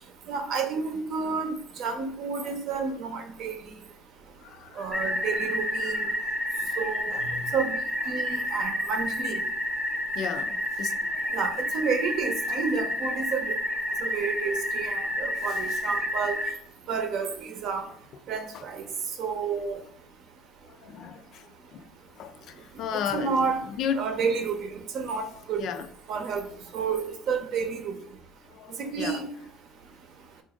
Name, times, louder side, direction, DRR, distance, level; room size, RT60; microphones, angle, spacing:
voice 1, 0.3-3.5 4.8-6.1 6.8-7.8 8.1-9.4 11.3-13.6 14.0-16.4 16.9-17.9 18.3-18.8 19.2-19.8 23.1-23.6 23.9-24.7 24.9-25.6 26.1-26.5 26.7-28.0 28.8-29.3, right 5 dB, 55° right, 0.7 m, -30 dB
voice 2, 4.4-5.2 10.2-11.4 13.9-14.0 20.8-21.4 21.7-21.8 22.2-22.3 22.8-23.4 23.8-24.1 25.6-25.9 28.5-29.2, left 8 dB, 55° left, 0.3 m, -34 dB
sound 1, 4.9-16.5, equal, 5° left, 0.6 m, -30 dB
4.1 x 2.5 x 3.6 m
cardioid pair, 145°, 0 cm